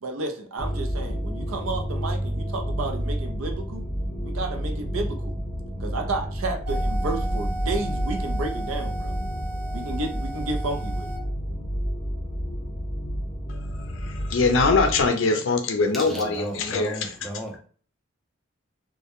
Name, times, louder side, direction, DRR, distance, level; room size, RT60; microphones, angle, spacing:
voice 1, 0.0-3.8 4.2-5.4 5.8-9.1 9.7-11.1, right 2 dB, 85° right, 4 dB, 0.5 m, -32 dB
sound 1, 0.6-15.1, equal, 30° left, 0.8 m, -30 dB
sound 2, 6.6-11.2, right 1 dB, 50° right, 1.0 m, -31 dB
voice 2, 13.9-17.1, left 3 dB, 70° left, 5 dB, 0.4 m, -22 dB
voice 3, 15.9-17.6, right 1 dB, ahead, -1 dB, 0.4 m, -34 dB
2.2 x 2.1 x 2.9 m, 0.42 s
head